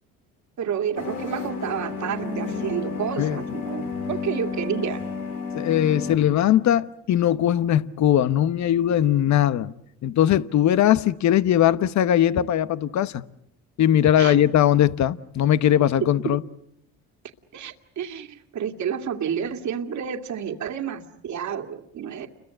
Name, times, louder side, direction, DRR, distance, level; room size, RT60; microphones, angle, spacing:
voice 1, 0.6-5.0 14.2-14.4 16.2-16.4 17.5-22.3, right 8 dB, 60° right, 2.3 m, -30 dB
sound 1, 1.0-6.2, left 4 dB, 90° left, 3.2 m, -31 dB
voice 2, 5.5-9.7 10.0-13.2 13.8-16.4, left 11 dB, 55° left, 1.0 m, -20 dB
29.5 x 22.5 x 7.9 m
supercardioid pair, 80°, 33 cm